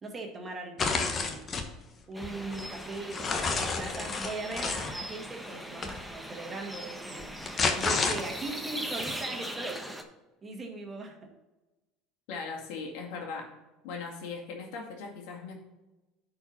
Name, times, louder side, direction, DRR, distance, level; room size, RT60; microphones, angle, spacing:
voice 1, 0.0-1.4 2.1-7.3 7.7-9.9 10.4-11.3, right 3 dB, 30° right, 2 dB, 2.0 m, -39 dB
sound 1, 0.8-1.7 2.2-4.9 5.8-6.0 7.2-8.6, left 4 dB, 35° left, 1.2 m, -30 dB
sound 2, 2.1-10.0, right 1 dB, ahead, 1.0 m, -40 dB
voice 2, 12.3-13.5 13.8-15.5, left 4 dB, 75° left, 0 dB, 2.1 m, -39 dB
10.0 x 4.8 x 4.3 m, 1.1 s
supercardioid pair, 90°, 0 cm